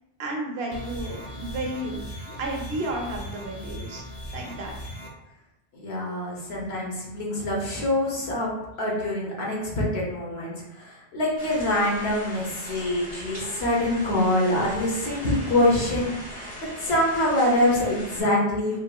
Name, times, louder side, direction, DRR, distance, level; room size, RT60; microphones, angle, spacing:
voice 1, 0.2-2.1 2.4-4.0 4.3-4.8, right 1 dB, 80° right, 0 dB, 0.9 m, -32 dB
sound 1, 0.7-5.1, equal, 45° left, 0.6 m, -38 dB
voice 2, 5.7-8.5 8.8-18.8, left 1 dB, 85° left, -4 dB, 1.2 m, -25 dB
sound 2, 11.4-18.2, equal, 10° left, 1.3 m, -40 dB
3.5 x 2.7 x 2.3 m, 0.88 s
omnidirectional pair, 1.0 m